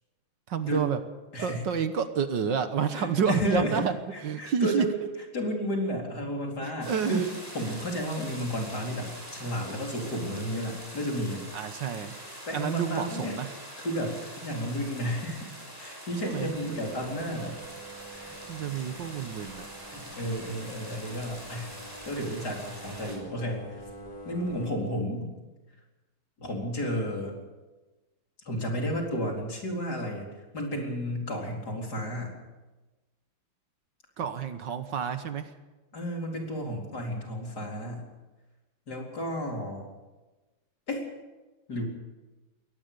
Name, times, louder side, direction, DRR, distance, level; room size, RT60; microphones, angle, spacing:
voice 1, 0.5-1.0 1.4-4.0 4.2-4.9 6.6-7.2 11.5-12.2 12.5-13.5 16.2-16.9 18.5-19.7 34.2-35.5, right 7 dB, 65° right, 10 dB, 1.7 m, -29 dB
voice 2, 2.9-3.8 4.1-4.9 5.3-7.2 7.5-11.4 12.5-13.4 13.8-15.5 15.8-17.6 18.2-18.4 19.9-21.7 22.0-23.8 24.2-25.3 26.4-27.4 28.4-30.3 30.5-32.3 35.9-38.1 38.9-39.9 40.9-41.1 41.7-41.8, equal, 50° left, 0 dB, 4.7 m, -32 dB
sound 1, 6.8-23.2, equal, 10° right, 6.0 m, -44 dB
sound 2, 16.3-24.7, right 2 dB, 20° left, 6.4 m, -47 dB
22.0 x 18.5 x 6.9 m, 1.2 s
omnidirectional pair, 2.2 m